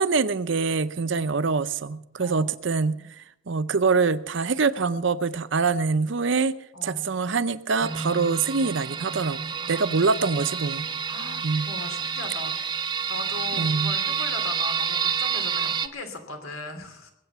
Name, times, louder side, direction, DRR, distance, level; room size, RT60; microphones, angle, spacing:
voice 1, 0.0-6.6 6.8-9.4 9.7-10.9 11.4-11.7 13.6-13.9, right 4 dB, 60° right, 0.6 m, -24 dB
voice 2, 6.7-7.1 9.6-10.4 11.1-12.6 13.1-17.1, left 2 dB, 90° left, 3.0 m, -38 dB
sound 1, 7.8-15.9, right 6 dB, 20° right, 0.6 m, -29 dB
21.5 x 8.4 x 6.8 m
head